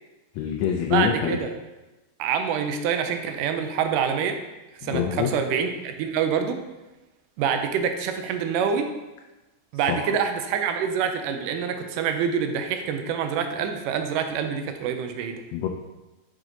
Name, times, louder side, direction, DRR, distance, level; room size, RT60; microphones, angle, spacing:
voice 1, 0.4-1.4 4.8-5.3 9.9-10.1 15.5-15.7, left 9 dB, 90° left, 3 dB, 1.5 m, -25 dB
voice 2, 0.9-1.5 2.2-4.3 4.8-6.6 7.4-8.9 9.7-15.4, right 7 dB, 90° right, 6 dB, 2.2 m, -26 dB
6.0 x 5.0 x 3.8 m, 1.1 s
omnidirectional pair, 3.7 m